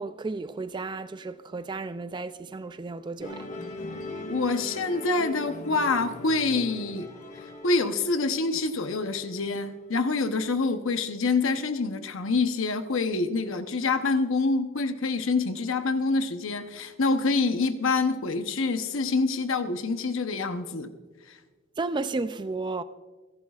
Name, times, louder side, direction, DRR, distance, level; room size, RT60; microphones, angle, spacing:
voice 1, 0.0-3.5 21.8-22.8, right 3 dB, 20° right, 0.3 m, -33 dB
Musical instrument, 3.2-9.8, left 1 dB, 35° left, 1.5 m, -40 dB
voice 2, 4.3-7.1 7.6-20.9 21.3-21.4, left 3 dB, 65° left, 0.9 m, -26 dB
28.0 x 11.5 x 2.4 m
head